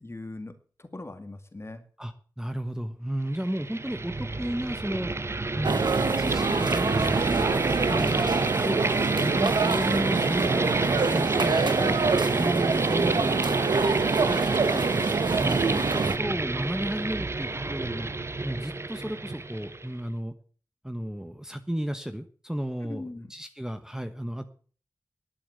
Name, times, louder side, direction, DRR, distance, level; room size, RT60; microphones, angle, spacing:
voice 1, 0.0-1.8 7.8-8.1 22.8-23.3, left 2 dB, 35° left, 8 dB, 2.2 m, -40 dB
voice 2, 2.0-5.2 5.5-5.9 6.2-7.5 7.9-8.2 8.5-8.9 9.1-12.0 12.3-13.4 14.3-14.4 14.7-18.1 18.4-20.3 20.8-24.5, equal, 5° right, 8 dB, 1.2 m, -33 dB
sound 1, 3.3-20.0, right 3 dB, 35° right, 0.8 m, -29 dB
sound 2, 5.6-16.2, right 4 dB, 80° right, 1.3 m, -26 dB
11.5 x 8.7 x 8.1 m, 0.42 s
wide cardioid pair, 65°, 8 cm